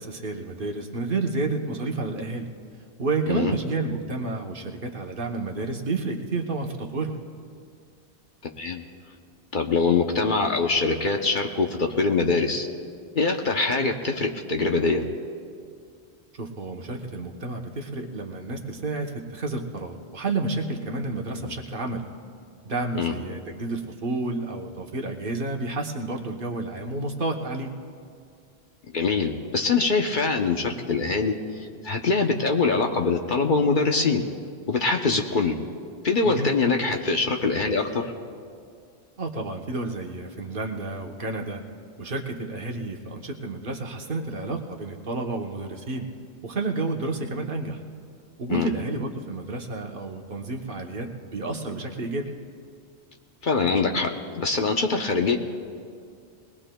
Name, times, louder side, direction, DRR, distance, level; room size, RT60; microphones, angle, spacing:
voice 1, 0.0-2.5 3.0-7.1 16.3-22.1 22.6-27.7 36.2-36.5 39.2-41.6 42.0-46.1 46.4-47.8 48.4-52.3, right 3 dB, 50° right, 2 dB, 1.1 m, -30 dB
voice 2, 8.4-8.8 9.5-12.7 13.1-15.0 21.4-21.5 23.0-23.1 28.9-31.3 31.6-34.2 34.7-35.6 36.0-38.1 48.5-48.7 53.4-55.4, left 4 dB, 50° left, 3 dB, 0.9 m, -23 dB
21.5 x 19.5 x 2.2 m, 2.3 s
omnidirectional pair, 1.2 m